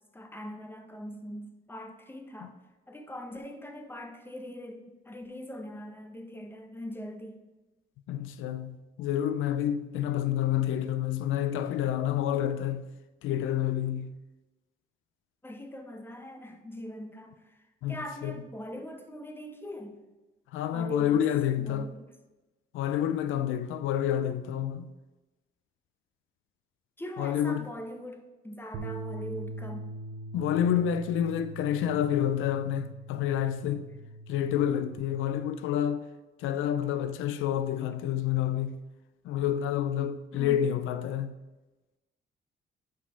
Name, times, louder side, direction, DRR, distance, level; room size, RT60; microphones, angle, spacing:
voice 1, 0.1-2.6 2.9-7.4 15.4-17.6 17.9-20.0 20.7-21.2 21.6-22.1 27.0-29.9 40.3-40.7, equal, 10° left, 1.0 m, -41 dB
voice 2, 8.1-12.9 13.2-14.2 17.8-18.4 20.5-21.9 22.7-24.9 27.2-27.7 30.3-33.9 34.3-36.0 36.4-38.8 39.2-41.4, left 10 dB, 85° left, 0.4 m, -28 dB
sound 1, 28.7-35.0, right 2 dB, 75° right, 0.9 m, -42 dB
5.7 x 5.0 x 5.5 m
cardioid pair, 90°, 20 cm